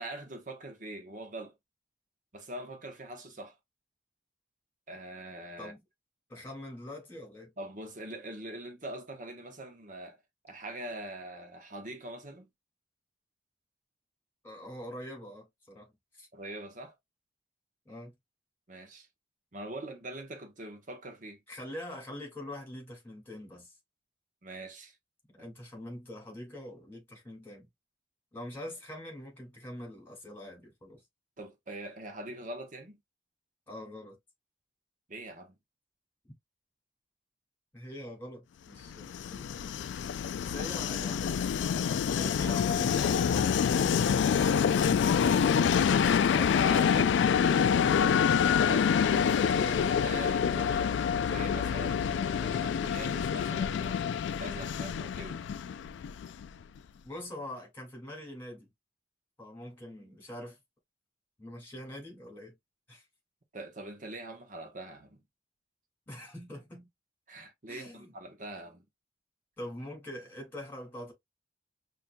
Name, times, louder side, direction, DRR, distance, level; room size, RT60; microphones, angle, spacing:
voice 1, 0.0-1.5 2.3-3.6 4.9-5.7 7.6-10.2 10.4-12.5 16.3-17.0 18.7-19.1 19.5-21.4 24.4-25.0 25.4-25.5 31.4-33.0 35.1-35.5 45.0-45.5 46.4-48.2 48.6-49.5 49.9-50.9 51.2-55.4 63.5-65.2 67.3-68.8, right 1 dB, 45° right, 0.9 m, -43 dB
voice 2, 6.3-7.5 14.4-15.9 16.2-16.3 17.9-18.1 21.5-23.7 25.4-27.7 28.3-31.0 33.7-34.2 37.7-39.6 40.4-41.5 42.2-44.0 49.4-49.8 57.0-58.7 59.4-60.6 61.4-62.5 62.9-63.0 66.1-66.9 67.7-68.1 69.6-71.1, left 1 dB, 10° left, 2.1 m, -44 dB
Train, 38.9-56.6, left 7 dB, 75° left, 0.3 m, -27 dB
5.7 x 2.6 x 2.2 m
head